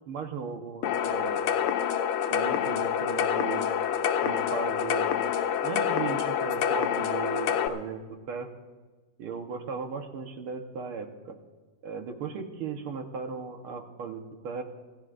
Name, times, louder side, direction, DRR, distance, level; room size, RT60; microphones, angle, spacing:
voice 1, 0.1-1.5 2.3-3.7 4.2-5.1 5.6-8.5 9.2-11.4 11.8-14.6, right 6 dB, 80° right, 5 dB, 2.1 m, -37 dB
sound 1, 0.8-7.7, left 8 dB, 90° left, 1.7 m, -27 dB
25.5 x 15.0 x 2.6 m, 1.3 s
omnidirectional pair, 2.4 m